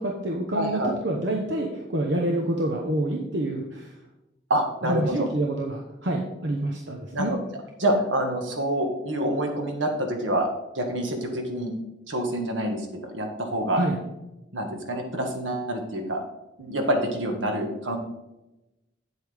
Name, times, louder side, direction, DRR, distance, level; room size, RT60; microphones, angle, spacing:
voice 1, 0.0-3.9 4.8-7.3 13.7-14.0, right 1 dB, 65° right, 0 dB, 1.0 m, -27 dB
voice 2, 0.5-0.9 4.5-5.3 7.1-7.4 7.8-10.5 10.8-11.7 12.1-13.8 14.5-16.2 16.6-18.0, right 1 dB, 85° right, 3 dB, 1.7 m, -27 dB
8.2 x 8.2 x 3.5 m, 0.96 s
head